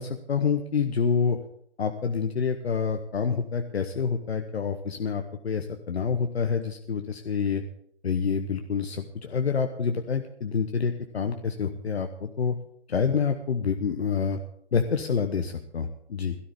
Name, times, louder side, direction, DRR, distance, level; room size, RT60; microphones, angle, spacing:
voice 1, 0.0-1.4 1.8-7.6 8.0-12.6 12.9-14.4 14.7-16.4, left 6 dB, 65° left, 6 dB, 1.1 m, -27 dB
17.5 x 13.0 x 3.6 m, 0.68 s
figure-of-eight pair, 120°, 34 cm